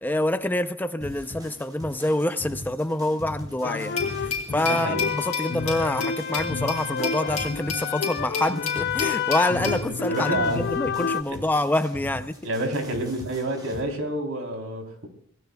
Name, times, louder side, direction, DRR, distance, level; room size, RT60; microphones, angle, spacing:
voice 1, 0.0-12.4, left 1 dB, 10° left, 9 dB, 0.5 m, -26 dB
sound 1, 1.0-13.8, equal, 20° right, 7.6 m, -40 dB
sound 2, 3.6-11.2, left 7 dB, 50° left, 0.5 m, -29 dB
Glass, 4.0-9.8, left 5 dB, 35° left, 4.3 m, -32 dB
voice 2, 4.6-5.2 9.7-10.6 11.3-11.4 12.4-15.1, right 1 dB, 70° right, 3 dB, 3.6 m, -29 dB
27.0 x 18.0 x 2.3 m, 0.64 s
head